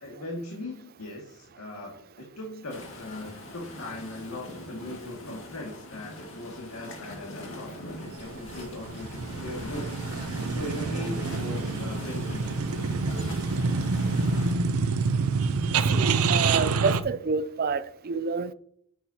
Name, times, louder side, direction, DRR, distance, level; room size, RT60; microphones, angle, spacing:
voice 1, 0.0-12.6, left 2 dB, 90° left, 2.1 m, -39 dB
sound 1, 2.7-14.5, left 1 dB, 60° left, 2.1 m, -42 dB
sound 2, 8.1-17.0, right 4 dB, 85° right, 0.7 m, -27 dB
voice 2, 15.9-18.5, right 4 dB, 45° right, 0.4 m, -28 dB
10.5 x 7.7 x 2.9 m
head